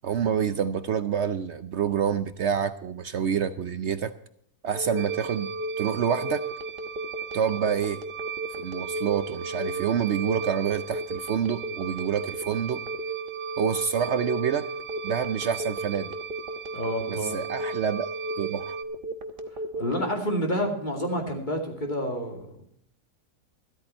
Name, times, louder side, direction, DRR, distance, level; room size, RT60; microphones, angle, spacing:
voice 1, 0.0-4.1 4.6-5.5 5.8-6.4 7.3-8.0 8.6-12.8 13.6-14.7 15.0-16.2 17.1-18.1 18.4-18.8, right 8 dB, 60° right, 12 dB, 0.7 m, -27 dB
Telephone, 4.7-20.0, right 2 dB, 35° right, 1.3 m, -34 dB
sound 1, 5.0-18.8, right 11 dB, 85° right, 1.3 m, -39 dB
voice 2, 16.7-17.4 19.8-22.5, equal, 30° left, 2 dB, 2.7 m, -28 dB
13.5 x 13.0 x 4.4 m, 0.68 s
omnidirectional pair, 1.7 m